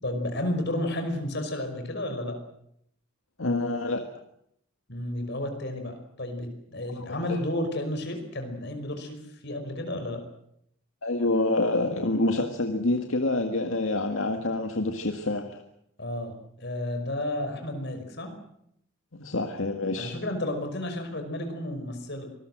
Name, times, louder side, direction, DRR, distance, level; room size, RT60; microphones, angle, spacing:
voice 1, 0.0-2.4 4.9-10.2 16.0-18.3 20.0-22.3, left 1 dB, 55° left, 6 dB, 5.4 m, -32 dB
voice 2, 3.4-4.0 7.3-7.4 11.0-15.6 19.2-20.2, left 2 dB, 70° left, 5 dB, 2.0 m, -27 dB
25.5 x 20.0 x 7.8 m, 0.73 s
head